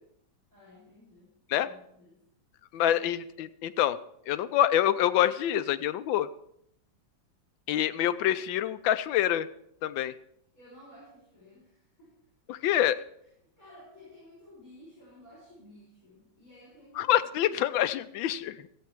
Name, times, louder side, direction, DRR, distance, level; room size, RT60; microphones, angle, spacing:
voice 1, 0.5-1.3 1.6-2.2 2.8-3.0 10.5-12.1 13.6-17.9, left 1 dB, 45° left, -9 dB, 6.2 m, -54 dB
voice 2, 2.7-4.0 4.3-6.3 7.7-9.5 9.8-10.1 12.5-13.0 17.0-18.7, left 11 dB, 85° left, 13 dB, 1.3 m, -26 dB
15.0 x 8.5 x 4.5 m, 0.73 s
omnidirectional pair, 2.1 m